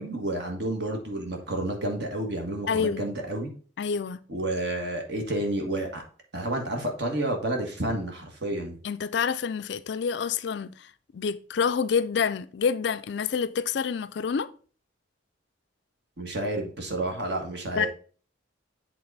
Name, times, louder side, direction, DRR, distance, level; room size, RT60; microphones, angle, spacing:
voice 1, 0.0-3.5 4.3-6.0 6.3-8.8 16.2-17.9, right 1 dB, 55° right, 1.6 m, -30 dB
voice 2, 2.7-3.1 3.8-4.2 8.8-10.7 11.1-14.5 17.8-17.9, left 6 dB, 60° left, 0.4 m, -27 dB
7.8 x 3.8 x 4.1 m
head